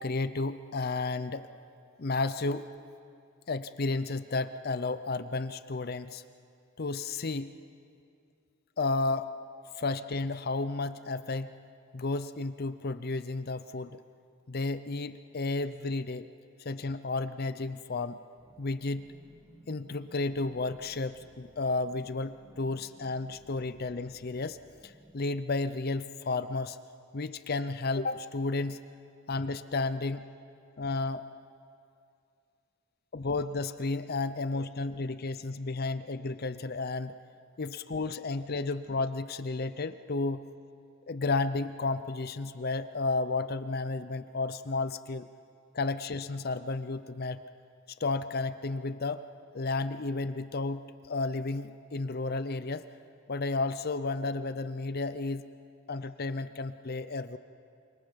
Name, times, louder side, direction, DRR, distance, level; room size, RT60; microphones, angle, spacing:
voice 1, 0.0-1.5 2.0-2.7 3.5-6.2 6.8-7.5 8.8-9.3 9.7-11.6 11.9-14.0 14.5-16.3 16.6-18.2 18.6-19.1 19.7-24.6 24.8-26.8 27.1-28.8 29.3-30.3 30.8-31.3 33.1-37.2 37.6-40.5 41.1-45.3 45.7-47.4 48.0-49.2 49.5-52.8 53.3-55.4 55.9-57.4, left 3 dB, 45° left, 12 dB, 0.6 m, -32 dB
sound 1, 18.4-25.1, right 1 dB, 15° right, 1.8 m, -58 dB
28.0 x 25.0 x 5.2 m, 2.4 s
head